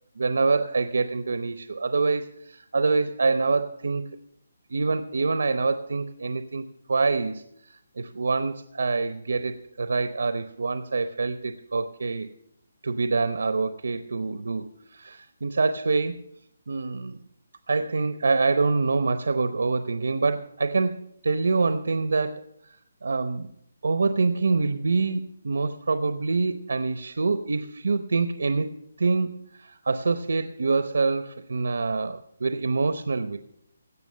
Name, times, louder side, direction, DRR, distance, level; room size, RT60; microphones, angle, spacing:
voice 1, 0.2-4.0 4.7-6.6 6.9-7.4 7.7-12.3 12.8-16.2 16.7-17.2 17.7-20.9 21.2-22.8 23.0-23.5 23.8-28.7 29.0-33.4, right 4 dB, 65° right, 10 dB, 0.8 m, -26 dB
16.5 x 6.0 x 8.6 m, 0.75 s
hypercardioid pair, 180°, 0 cm